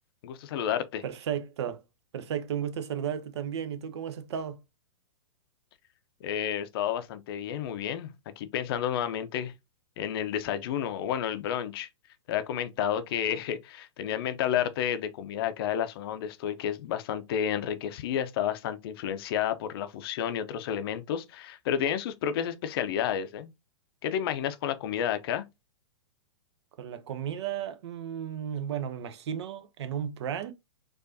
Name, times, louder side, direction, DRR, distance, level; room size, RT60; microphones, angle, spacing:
voice 1, 0.2-1.0 6.2-8.1 8.4-9.5 10.0-11.9 12.3-23.5 24.0-25.4, left 9 dB, 50° left, 0.5 m, -31 dB
voice 2, 1.0-1.8 2.1-4.6 26.8-30.5, right 9 dB, 60° right, 0.6 m, -34 dB
4.6 x 2.5 x 2.6 m
hypercardioid pair, 115°, 16 cm